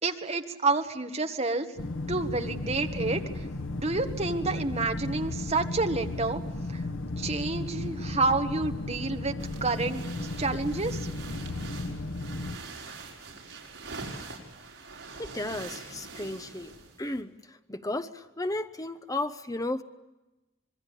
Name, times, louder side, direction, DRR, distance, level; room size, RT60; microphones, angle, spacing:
voice 1, 0.0-1.7 2.1-3.2 3.8-6.4 6.7-6.8 7.2-10.0 10.4-11.1, right 3 dB, 35° right, 6 dB, 1.7 m, -29 dB
sound 1, 1.8-12.6, left 2 dB, 75° left, 1.3 m, -34 dB
sound 2, 9.4-17.2, right 3 dB, 65° right, 6.0 m, -44 dB
voice 2, 15.2-16.7 17.0-17.3 17.7-19.8, left 2 dB, 15° left, 10 dB, 1.0 m, -33 dB
26.0 x 22.0 x 8.5 m, 1.0 s
head